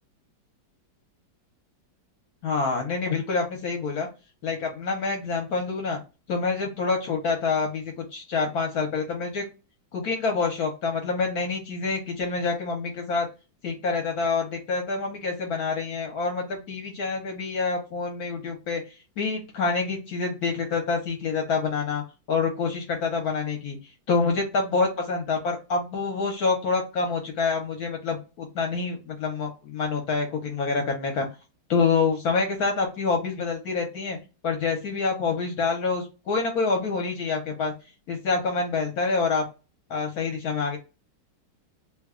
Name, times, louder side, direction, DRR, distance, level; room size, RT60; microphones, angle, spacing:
voice 1, 2.4-4.1 4.4-6.0 6.3-9.4 9.9-13.3 13.6-18.8 19.2-22.0 22.3-23.8 24.1-31.3 31.7-34.2 34.4-37.7 38.1-39.4 39.9-40.8, left 4 dB, 65° left, 3 dB, 1.0 m, -27 dB
3.0 x 2.2 x 3.5 m, 0.29 s
omnidirectional pair, 2.0 m